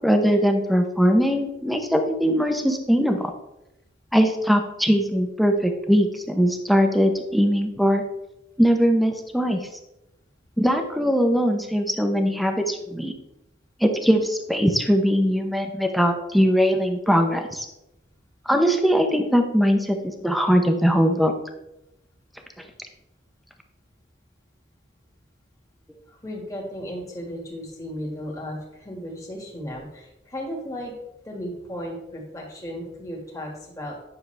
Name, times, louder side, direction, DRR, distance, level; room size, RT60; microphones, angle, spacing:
voice 1, 0.0-3.3 4.1-8.0 8.6-9.6 10.6-13.1 13.8-17.7 18.5-21.3, equal, ahead, 4 dB, 0.8 m, -21 dB
voice 2, 26.1-31.0 31.2-34.0, equal, 20° left, -2 dB, 1.9 m, -35 dB
9.6 x 6.5 x 3.4 m, 0.89 s
head